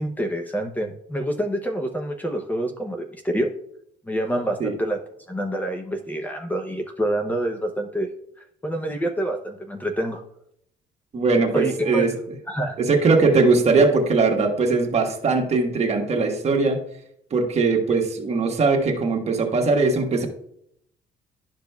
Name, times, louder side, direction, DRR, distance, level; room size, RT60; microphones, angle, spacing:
voice 1, 0.0-3.5 4.1-5.0 5.3-8.1 8.6-10.2 11.5-12.1 12.5-12.8, right 1 dB, 10° left, 4 dB, 0.7 m, -27 dB
voice 2, 11.1-12.1 12.8-16.8 17.3-20.3, right 3 dB, 40° right, 2 dB, 1.3 m, -20 dB
12.0 x 5.0 x 2.3 m, 0.72 s
cardioid pair, 110°, 17 cm